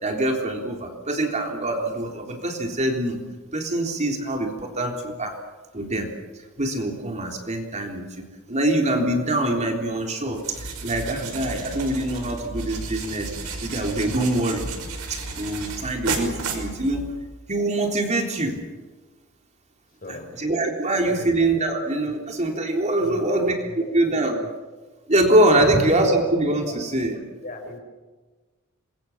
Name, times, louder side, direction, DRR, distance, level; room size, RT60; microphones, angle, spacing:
voice 1, 0.0-3.2 3.5-5.3 5.7-6.1 6.6-14.7 15.1-17.1 17.5-18.6 20.1-23.5 23.9-24.4 25.1-27.2, right 1 dB, 30° right, 2 dB, 3.5 m, -24 dB
sound 1, 10.3-17.3, right 3 dB, 90° right, 5.6 m, -33 dB
voice 2, 20.0-20.4 21.1-21.3 22.0-22.1 23.0-24.2 25.6-26.0 26.7-26.8 27.4-27.8, left 2 dB, 40° left, 4 dB, 5.5 m, -37 dB
27.0 x 22.5 x 7.2 m, 1.3 s
head